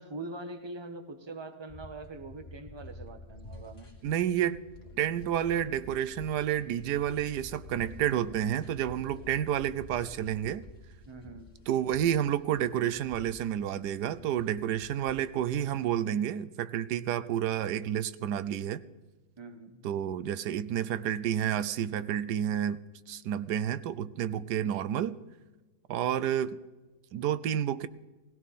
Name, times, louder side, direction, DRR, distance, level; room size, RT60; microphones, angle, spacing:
voice 1, 0.0-3.9 11.1-11.5 19.4-19.8, right 2 dB, 20° right, 7 dB, 1.1 m, -43 dB
sound 1, 1.7-15.9, left 2 dB, 40° left, 2.6 m, -50 dB
voice 2, 4.0-4.6 5.0-10.6 11.7-18.8 19.8-25.2 25.9-26.6 27.1-27.9, right 10 dB, 90° right, 15 dB, 1.3 m, -30 dB
19.0 x 17.0 x 4.2 m, 1.2 s
omnidirectional pair, 1.7 m